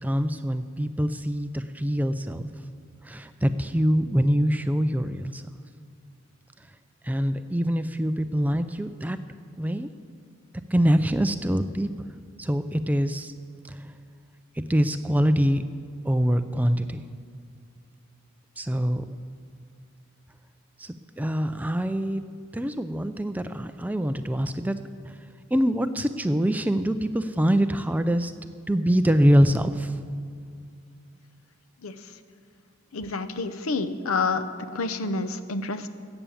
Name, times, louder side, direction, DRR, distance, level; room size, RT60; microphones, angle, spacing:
voice 1, 0.0-2.5 3.0-5.4 7.0-9.2 9.6-9.9 10.7-11.9 12.4-13.3 13.6-13.9 14.6-15.6 16.0-17.0 18.6-19.1 20.8-22.2 22.5-24.8 25.1-25.2 25.5-28.3 28.7-30.0, equal, 5° right, 10 dB, 0.3 m, -24 dB
voice 2, 32.9-35.9, left 3 dB, 80° left, 11 dB, 0.7 m, -28 dB
14.0 x 8.9 x 7.2 m, 2.3 s
head